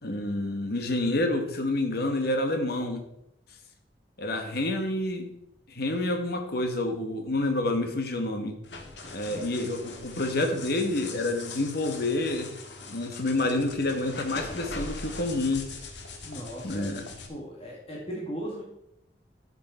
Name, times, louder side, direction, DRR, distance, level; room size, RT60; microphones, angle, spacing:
voice 1, 0.0-3.0 4.2-5.3 5.7-8.6 9.1-12.5 12.9-15.7 16.6-17.1, left 2 dB, 60° left, 5 dB, 1.5 m, -28 dB
sound 1, 8.6-17.3, left 3 dB, 80° left, 1.7 m, -41 dB
voice 2, 8.7-10.0 16.2-16.9 17.3-18.6, equal, 35° left, -4 dB, 2.2 m, -39 dB
13.0 x 7.0 x 4.3 m, 0.79 s
head